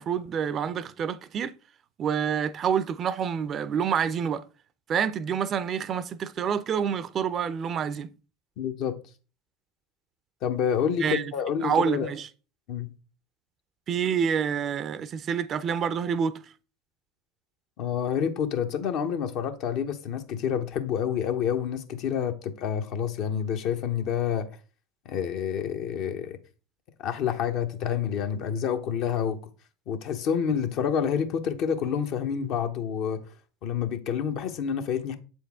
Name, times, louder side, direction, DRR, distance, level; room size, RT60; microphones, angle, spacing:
voice 1, 0.0-1.5 2.0-4.4 4.9-8.1 11.0-11.3 11.6-12.3 13.9-16.3, right 7 dB, 40° right, 0.5 m, -27 dB
voice 2, 8.6-9.0 10.4-12.1 12.7-12.9 17.8-24.5 25.1-26.4 27.0-29.4 29.9-33.3 33.6-35.2, left 8 dB, 60° left, 0.9 m, -28 dB
7.4 x 4.4 x 3.6 m
hypercardioid pair, 85°, 0 cm